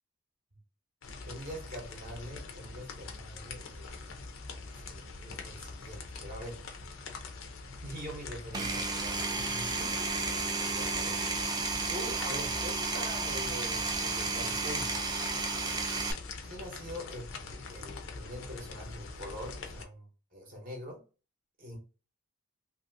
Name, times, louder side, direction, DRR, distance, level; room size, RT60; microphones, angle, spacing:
sound 1, 1.0-19.8, left 3 dB, 70° left, 0.5 m, -44 dB
voice 1, 1.2-4.3 4.6-6.6 7.8-10.1 10.7-11.2 11.9-15.0 16.4-20.1 20.3-21.0 21.6-21.8, equal, 40° right, 0 dB, 0.8 m, -44 dB
Power tool, 8.5-16.1, right 3 dB, 20° right, 0.4 m, -32 dB
2.9 x 2.6 x 2.6 m, 0.34 s
head